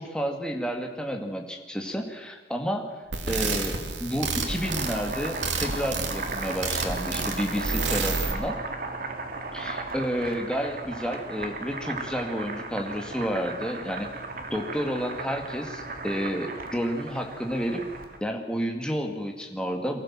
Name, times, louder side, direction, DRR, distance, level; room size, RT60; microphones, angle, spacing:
voice 1, 0.0-2.9 3.3-8.6 9.5-14.1 14.5-17.9 18.2-20.0, equal, 5° left, 2 dB, 2.1 m, -30 dB
sound 1, 3.1-8.3, right 4 dB, 90° right, 2.5 m, -30 dB
Boiling, 4.4-18.2, right 3 dB, 50° right, 2.1 m, -36 dB
23.5 x 15.5 x 7.5 m, 1.3 s
head